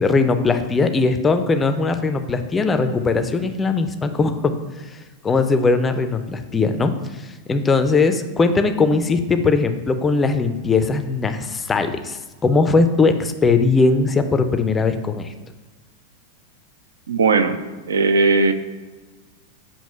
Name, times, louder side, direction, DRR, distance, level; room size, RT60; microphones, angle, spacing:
voice 1, 0.0-4.5 4.9-5.0 5.2-6.9 7.2-15.3, left 4 dB, 15° left, 8 dB, 0.4 m, -19 dB
voice 2, 17.1-17.6 17.9-18.5, right 4 dB, 65° right, 9 dB, 0.4 m, -17 dB
7.1 x 2.9 x 5.4 m, 1.3 s
figure-of-eight pair, 90°, 0 cm